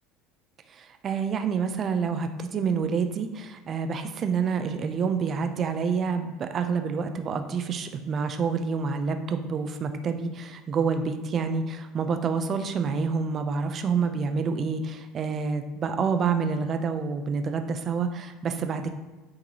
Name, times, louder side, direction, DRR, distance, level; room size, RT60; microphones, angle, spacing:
voice 1, 0.7-18.9, right 5 dB, 40° right, 7 dB, 0.6 m, -28 dB
8.9 x 3.8 x 3.0 m, 1.2 s
hypercardioid pair, 70°, 0 cm